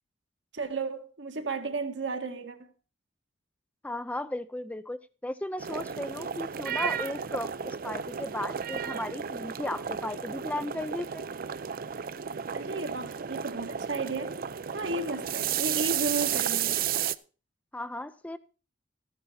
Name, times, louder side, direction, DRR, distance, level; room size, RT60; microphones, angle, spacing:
voice 1, 0.5-2.7 12.5-14.4 14.7-16.8, right 3 dB, 70° right, 1.5 m, -33 dB
voice 2, 3.8-11.2 17.7-18.4, left 1 dB, 10° left, 0.5 m, -35 dB
sound 1, 5.6-17.2, right 8 dB, 50° right, 0.5 m, -33 dB
13.5 x 9.6 x 4.1 m
head